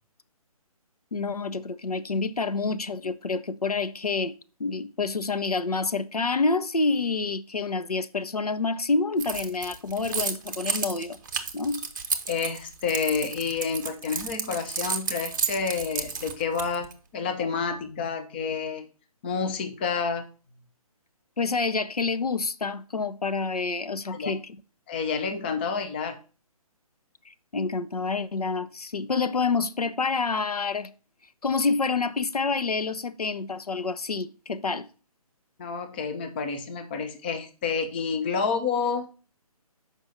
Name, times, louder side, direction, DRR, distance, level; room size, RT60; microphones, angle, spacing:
voice 1, 1.1-4.3 4.6-11.2 11.5-11.9 21.4-24.4 27.3-30.9 31.4-34.9, left 4 dB, 80° left, 0.6 m, -28 dB
Keys jangling, 9.2-16.9, right 6 dB, 30° right, 0.7 m, -31 dB
voice 2, 12.3-16.9 17.1-18.9 19.2-20.3 24.1-24.3 24.9-26.1 35.6-39.1, left 5 dB, 15° left, 0.5 m, -29 dB
6.2 x 5.1 x 4.1 m
figure-of-eight pair, 140°, 19 cm